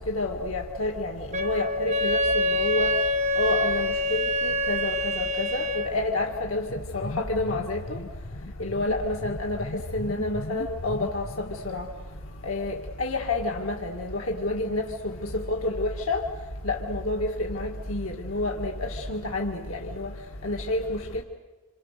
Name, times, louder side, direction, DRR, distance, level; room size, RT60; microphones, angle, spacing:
voice 1, 0.1-2.9 3.4-6.7 6.9-8.0 8.6-11.9 12.4-15.2 15.5-16.2 16.6-20.1 20.4-21.2, left 2 dB, 80° left, 1.8 m, -29 dB
Wind instrument woodwind instrument, 1.3-6.0, left 1 dB, 35° right, 0.9 m, -26 dB
sound 1, 6.7-11.7, left 2 dB, 55° left, 1.0 m, -37 dB
28.0 x 27.0 x 6.6 m
head